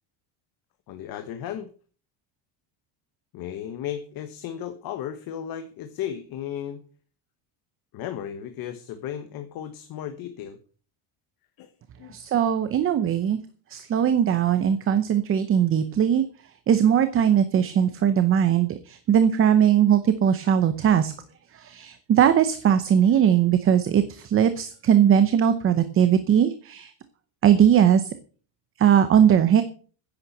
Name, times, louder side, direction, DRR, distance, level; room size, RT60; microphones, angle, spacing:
voice 1, 0.9-1.7 3.3-6.8 7.9-10.6 11.6-11.7 12.0-12.2, left 10 dB, 45° left, 8 dB, 1.3 m, -35 dB
voice 2, 12.1-13.4 13.7-16.2 16.7-21.1 21.5-26.9 27.4-28.1 28.8-29.6, right 9 dB, 25° right, 11 dB, 0.8 m, -20 dB
10.5 x 8.8 x 8.0 m, 0.41 s
cardioid pair, 175°, 50 cm